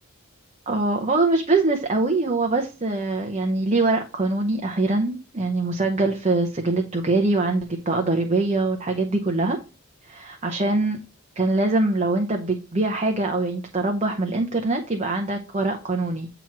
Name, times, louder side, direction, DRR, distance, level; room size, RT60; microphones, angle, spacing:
voice 1, 0.7-9.6 10.0-11.0 11.4-16.3, right 2 dB, 30° right, 3 dB, 0.7 m, -23 dB
8.8 x 3.0 x 5.9 m, 0.32 s
head